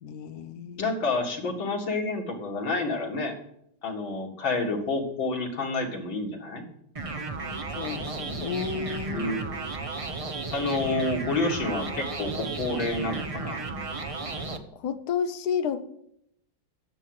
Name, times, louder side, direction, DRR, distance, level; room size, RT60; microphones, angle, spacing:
voice 1, 0.0-0.9 7.7-9.3 14.7-15.9, left 7 dB, 60° left, 9 dB, 1.3 m, -31 dB
voice 2, 0.8-3.3 3.8-6.6 9.1-9.4 10.5-13.6, left 3 dB, 90° left, 0 dB, 2.8 m, -29 dB
sound 1, 7.0-14.6, right 3 dB, 40° right, 0.4 m, -34 dB
9.8 x 7.4 x 7.8 m, 0.72 s
omnidirectional pair, 2.1 m